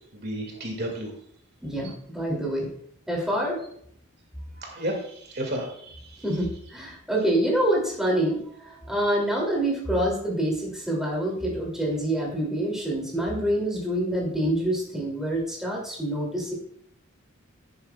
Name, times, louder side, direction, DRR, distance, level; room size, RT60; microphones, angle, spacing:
voice 1, 0.1-1.1 4.6-6.0, right 1 dB, 50° right, 1 dB, 2.0 m, -32 dB
voice 2, 1.6-2.7 3.1-3.6 6.2-16.5, right 1 dB, ahead, -3 dB, 2.6 m, -26 dB
11.0 x 10.0 x 2.3 m, 0.66 s
head